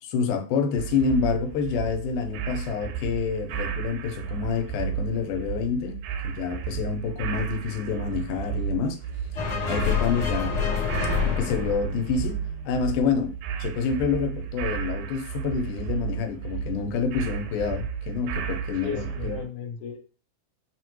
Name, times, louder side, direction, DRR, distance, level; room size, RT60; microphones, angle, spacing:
voice 1, 0.0-6.0 6.2-9.0 9.3-10.6 11.2-12.4 12.6-13.3 13.6-19.4, left 6 dB, 90° left, 2.1 m, -28 dB
sound 1, 0.8-19.4, right 8 dB, 80° right, 1.9 m, -33 dB
sound 2, 9.4-12.9, left 7 dB, 40° left, 0.8 m, -28 dB
voice 2, 18.8-20.0, left 6 dB, 75° left, 1.3 m, -34 dB
6.1 x 2.1 x 3.0 m
omnidirectional pair, 3.6 m